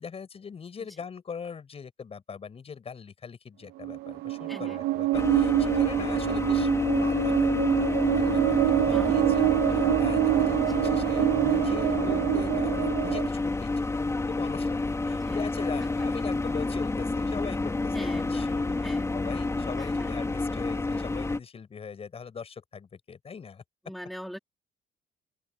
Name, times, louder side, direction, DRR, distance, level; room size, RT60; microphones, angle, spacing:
voice 1, 0.0-6.7 7.0-23.6, left 6 dB, 35° left, 6.6 m, -41 dB
sound 1, 3.8-13.3, right 19 dB, 80° right, 0.5 m, -26 dB
voice 2, 4.5-4.8 8.9-9.5 10.6-10.8 15.2-15.4 15.8-16.2 17.9-19.2 19.8-20.3 23.8-24.4, equal, ahead, 4.8 m, -43 dB
sound 2, 5.1-21.4, left 3 dB, 15° left, 4.5 m, -29 dB
cardioid pair, 110°, 17 cm